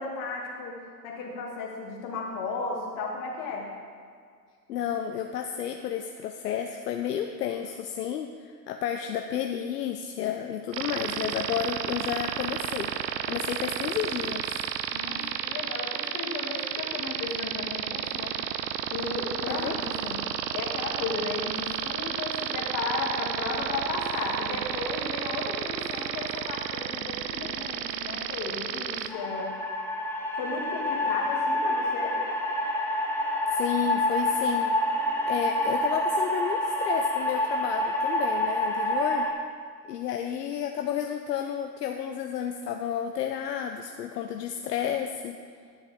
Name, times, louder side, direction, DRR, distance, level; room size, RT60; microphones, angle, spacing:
voice 1, 0.0-3.7 10.9-11.5 14.9-18.4 18.9-20.2 20.5-29.5 30.4-32.2, left 3 dB, 40° left, -1 dB, 2.1 m, -34 dB
voice 2, 4.7-12.9 13.3-14.5 19.5-19.8 33.5-34.8 35.3-39.3 39.9-45.4, left 9 dB, 70° left, 4 dB, 0.7 m, -31 dB
sound 1, 10.7-29.1, right 9 dB, 85° right, 0.6 m, -32 dB
sound 2, 29.1-39.3, left 1 dB, 5° left, 0.7 m, -27 dB
11.0 x 6.9 x 3.6 m, 2.1 s
hypercardioid pair, 100°, 50 cm